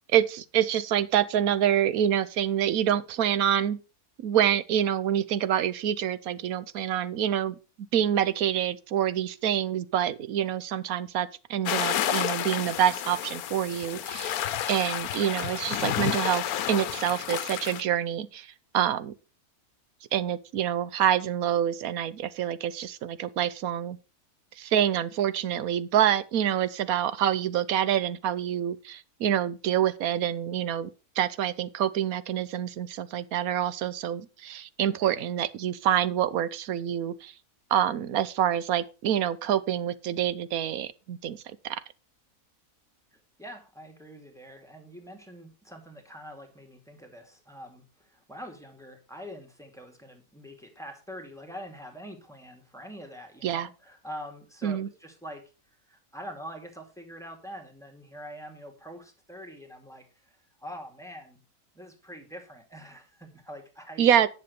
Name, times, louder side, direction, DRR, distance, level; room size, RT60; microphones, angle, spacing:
voice 1, 0.1-3.8 4.2-7.5 7.9-18.5 18.7-19.1 20.1-24.0 24.6-30.9 31.2-37.3 37.7-41.4 41.6-41.8 53.4-53.7 54.6-54.9 64.0-64.3, right 10 dB, 70° right, 1.2 m, -26 dB
sound 1, 11.7-17.8, left 11 dB, 75° left, 1.2 m, -30 dB
voice 2, 43.1-61.4 61.7-64.1, equal, ahead, 2.2 m, -44 dB
10.5 x 6.8 x 5.2 m
omnidirectional pair, 1.6 m